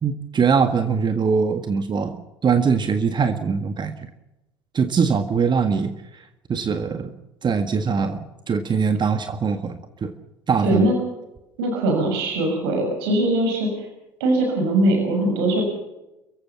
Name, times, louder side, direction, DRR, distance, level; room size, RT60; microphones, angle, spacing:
voice 1, 0.0-4.1 4.7-7.1 7.4-10.1 10.5-10.9, right 5 dB, 35° right, 8 dB, 1.8 m, -22 dB
voice 2, 10.6-10.9 11.6-13.9 14.2-15.6, right 1 dB, 75° right, 2 dB, 6.4 m, -21 dB
29.0 x 16.0 x 7.0 m, 0.96 s
hypercardioid pair, 65°, 13 cm